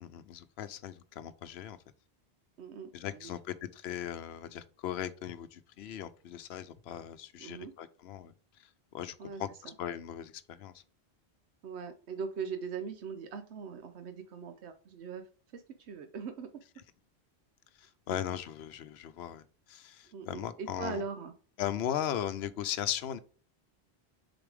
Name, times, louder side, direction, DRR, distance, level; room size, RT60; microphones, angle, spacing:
voice 1, 0.0-1.8 2.9-8.3 8.6-10.8 17.8-21.0 21.6-23.2, left 10 dB, 75° left, 0.9 m, -38 dB
voice 2, 2.6-3.3 7.4-7.7 9.2-9.7 11.6-15.2 15.5-16.6 18.1-18.2 20.1-21.3, right 6 dB, 85° right, 1.0 m, -41 dB
6.8 x 4.0 x 3.4 m
omnidirectional pair, 1.1 m